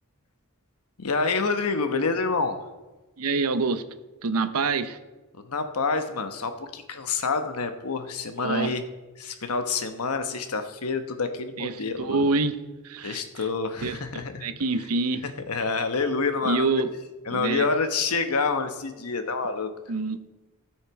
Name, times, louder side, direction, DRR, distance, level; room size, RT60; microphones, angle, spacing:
voice 1, 1.0-2.6 5.5-8.8 9.2-12.2 13.0-14.4 15.5-16.7 17.3-19.7, left 4 dB, 80° left, 8 dB, 1.0 m, -27 dB
voice 2, 3.2-3.8 4.2-5.0 8.4-8.8 11.6-12.6 12.8-13.5 13.8-15.2 16.4-16.9 17.3-17.7 19.9-20.3, right 3 dB, 80° right, 11 dB, 0.7 m, -26 dB
16.0 x 6.5 x 4.7 m, 1.2 s
head